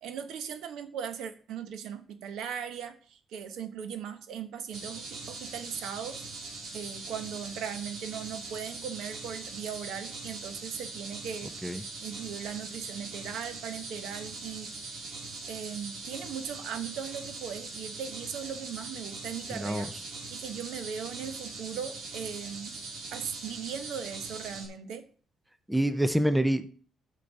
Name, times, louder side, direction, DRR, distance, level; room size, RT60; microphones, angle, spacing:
voice 1, 0.0-6.2 6.7-11.5 12.0-14.7 15.5-19.9 20.3-22.8 23.1-25.0, right 8 dB, 85° right, 9 dB, 1.0 m, -38 dB
sound 1, 4.7-24.7, right 3 dB, 65° right, 2.5 m, -41 dB
voice 2, 25.7-26.7, right 1 dB, 5° right, 11 dB, 0.5 m, -26 dB
9.8 x 6.7 x 4.0 m, 0.44 s
cardioid pair, 165°, 0 cm